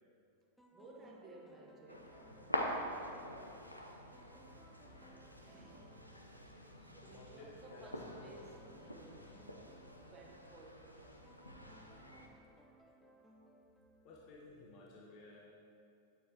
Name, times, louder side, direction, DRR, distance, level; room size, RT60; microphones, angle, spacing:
sound 1, 0.6-14.8, right 1 dB, 5° left, 0.8 m, -64 dB
voice 1, 0.7-2.5 5.4-5.9 6.8-8.5 8.8-9.7 10.0-11.4, right 2 dB, 25° right, 0 dB, 1.3 m, -57 dB
sound 2, 1.9-12.3, equal, 90° left, 0.7 m, -45 dB
sound 3, 2.7-10.3, right 1 dB, 85° right, 0.6 m, -64 dB
voice 2, 7.0-8.5 14.0-15.4, left 3 dB, 40° left, -3 dB, 1.3 m, -55 dB
9.2 x 7.1 x 4.6 m, 2.5 s
figure-of-eight pair, 90°, 0 cm